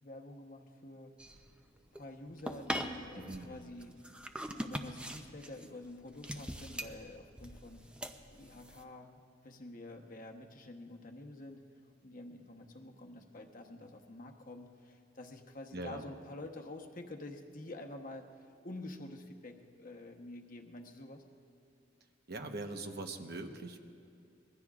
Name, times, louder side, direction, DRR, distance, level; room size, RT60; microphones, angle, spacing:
voice 1, 0.0-1.2 1.9-7.9 8.3-11.6 12.0-21.2, left 2 dB, 45° left, 3 dB, 1.1 m, -48 dB
sound 1, 1.2-8.8, equal, 5° right, 0.6 m, -42 dB
voice 2, 3.1-3.6 15.7-16.0 22.3-23.8, right 2 dB, 55° right, 5 dB, 1.1 m, -42 dB
25.5 x 22.0 x 2.5 m, 2.4 s
head